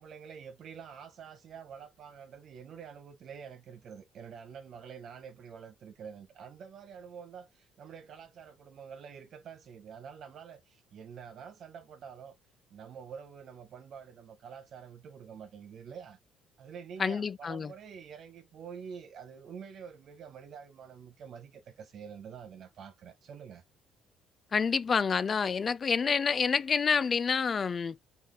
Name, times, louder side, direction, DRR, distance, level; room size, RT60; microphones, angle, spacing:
voice 1, 0.0-12.3 12.7-16.2 16.6-23.6, right 7 dB, 60° right, 0.7 m, -47 dB
voice 2, 17.0-17.7 24.5-28.0, left 5 dB, 40° left, 0.3 m, -28 dB
3.7 x 2.4 x 3.6 m
hypercardioid pair, 60°, 0 cm